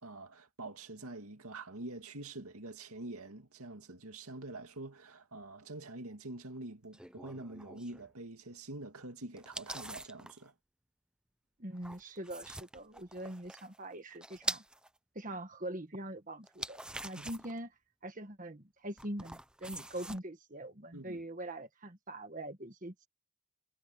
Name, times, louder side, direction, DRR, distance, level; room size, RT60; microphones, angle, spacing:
voice 1, 0.0-10.5 17.2-17.3 20.9-21.2, right 2 dB, 80° right, 2.3 m, -46 dB
sound 1, 6.9-8.1 9.4-10.4 11.8-14.9 16.4-17.6 19.0-20.2, right 1 dB, 5° right, 0.6 m, -43 dB
voice 2, 11.6-14.6 15.1-17.7 18.0-23.1, right 1 dB, 35° right, 1.6 m, -43 dB
head